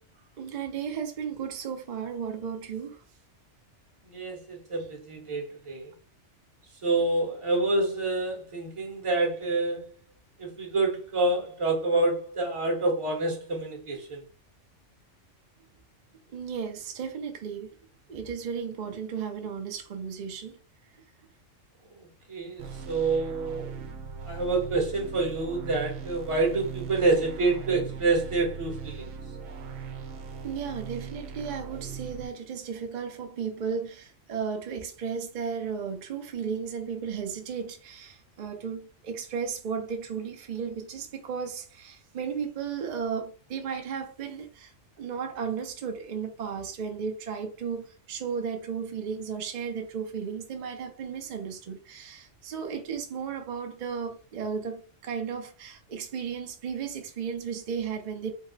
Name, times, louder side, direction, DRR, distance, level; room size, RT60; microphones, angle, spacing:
voice 1, 0.4-3.0 16.3-17.7 18.1-20.6 30.4-44.7 45.0-58.3, right 6 dB, 50° right, 0.5 m, -34 dB
voice 2, 4.1-5.9 6.8-9.9 10.4-14.2 22.0-23.7 24.2-29.1, right 3 dB, 30° right, 0.9 m, -27 dB
sound 1, 22.6-32.3, right 6 dB, 80° right, 1.0 m, -39 dB
3.7 x 2.0 x 3.9 m
omnidirectional pair, 1.3 m